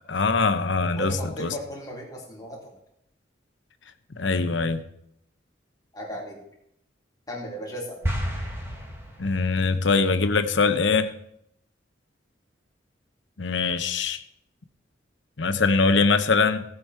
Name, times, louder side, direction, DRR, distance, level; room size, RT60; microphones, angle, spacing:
voice 1, 0.1-1.5 4.2-4.8 9.2-11.1 13.4-14.2 15.4-16.6, left 4 dB, 80° left, 10 dB, 0.9 m, -22 dB
voice 2, 0.9-2.6 5.9-6.4 7.3-8.0, right 1 dB, 20° left, -3 dB, 3.2 m, -35 dB
sound 1, 8.0-9.7, equal, 15° right, 1.9 m, -31 dB
16.5 x 7.7 x 4.8 m, 0.75 s
head